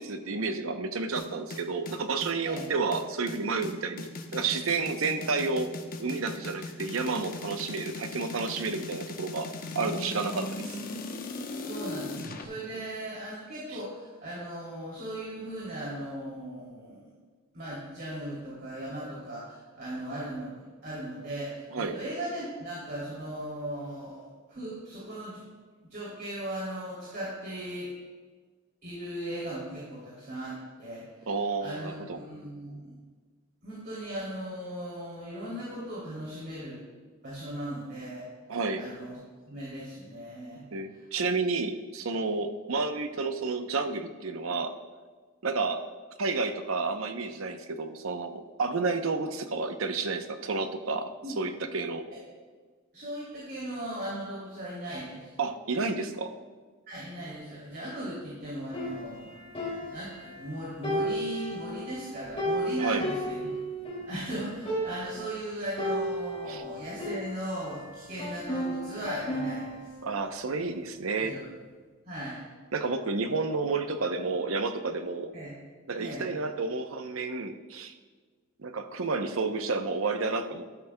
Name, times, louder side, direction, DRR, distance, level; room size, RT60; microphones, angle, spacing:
voice 1, 0.0-5.7 6.0-9.5 9.7-10.6 12.7-12.8 21.7-22.0 31.3-32.2 38.5-38.8 40.7-44.7 45.4-45.8 46.2-51.1 51.4-52.0 55.4-56.3 62.8-63.0 66.5-66.6 70.0-71.3 72.7-75.3 75.9-77.9 78.6-80.6, right 4 dB, 80° right, 8 dB, 0.7 m, -30 dB
sound 1, 1.2-12.4, left 3 dB, 45° left, 0.9 m, -38 dB
voice 2, 11.6-17.1 17.5-25.4 25.9-27.9 28.8-31.3 31.6-32.9 33.6-36.8 37.2-38.3 38.7-39.2 39.5-40.7 51.2-51.4 52.1-52.2 52.9-55.3 56.9-59.4 59.8-63.5 64.1-69.9 71.1-71.4 72.0-72.4 75.3-75.5 76.0-76.3, right 1 dB, 50° right, -7 dB, 2.9 m, -38 dB
sound 2, 58.7-60.5 60.8-64.1 64.4-64.5 64.7-65.3 65.8-67.8 68.2-69.9, equal, 30° left, 2.5 m, -34 dB
12.5 x 12.0 x 2.2 m, 1.5 s
head